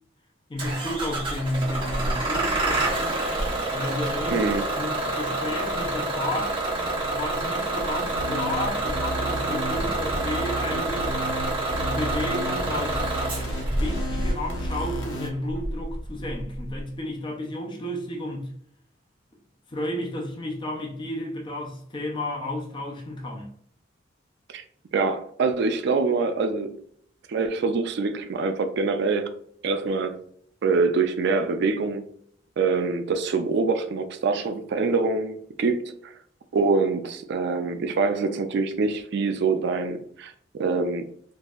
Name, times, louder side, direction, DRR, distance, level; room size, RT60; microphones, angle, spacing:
voice 1, 0.5-2.9 3.7-11.2 11.8-13.3 13.6-18.5 19.7-23.5, left 1 dB, 25° left, 0.6 m, -32 dB
Bus / Engine starting, 0.6-16.8, right 2 dB, 30° right, 1.0 m, -28 dB
voice 2, 4.3-4.6 24.5-24.6 24.9-26.7 27.3-29.3 29.6-30.2 30.6-32.0 32.6-36.1 36.5-41.1, right 4 dB, 65° right, 0.4 m, -25 dB
sound 1, 8.0-15.3, equal, 80° left, 0.9 m, -33 dB
3.9 x 2.6 x 2.3 m
head